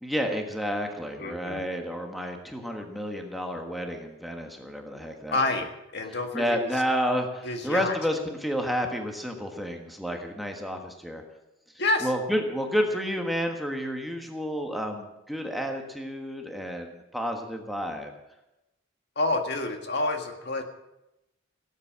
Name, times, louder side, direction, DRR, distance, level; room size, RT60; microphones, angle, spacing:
voice 1, 0.0-5.4 6.3-11.2 12.0-18.1, equal, ahead, 2 dB, 1.4 m, -30 dB
voice 2, 1.2-1.6 5.3-5.7 5.9-6.7 7.4-8.0 11.8-12.1 19.2-20.6, left 2 dB, 55° left, 5 dB, 1.8 m, -28 dB
17.5 x 8.5 x 7.5 m, 0.92 s
head